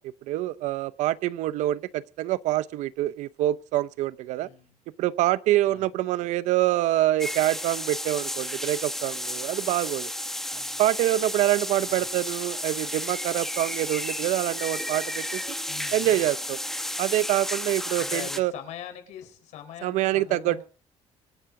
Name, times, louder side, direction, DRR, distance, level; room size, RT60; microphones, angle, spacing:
voice 1, 0.3-4.5 5.0-10.1 10.8-15.4 15.9-16.6 17.0-18.5 19.8-20.6, right 15 dB, 90° right, 0.8 m, -25 dB
voice 2, 4.4-4.8 5.7-5.9 10.5-10.8 11.9-12.2 15.7-16.3 18.0-20.6, left 10 dB, 75° left, 4.5 m, -42 dB
sound 1, 7.2-18.4, left 1 dB, 5° left, 1.0 m, -33 dB
25.0 x 10.5 x 3.9 m
cardioid pair, 160°, 12 cm